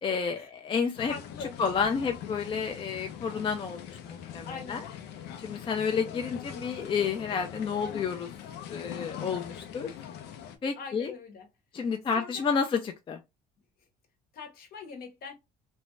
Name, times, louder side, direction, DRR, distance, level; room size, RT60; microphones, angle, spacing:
voice 1, 0.0-1.1 1.6-4.8 5.4-8.3 8.7-9.9 10.6-11.1 11.7-13.2, left 6 dB, 30° left, 0.4 m, -30 dB
sound 1, 0.9-10.6, left 9 dB, 85° left, 0.5 m, -42 dB
voice 2, 1.1-1.6 3.4-3.5 4.4-4.9 5.5-5.7 7.7-8.1 10.8-11.5 11.8-12.5 14.3-15.3, left 5 dB, 65° left, 0.9 m, -43 dB
2.5 x 2.1 x 3.1 m
cardioid pair, 110°, 17 cm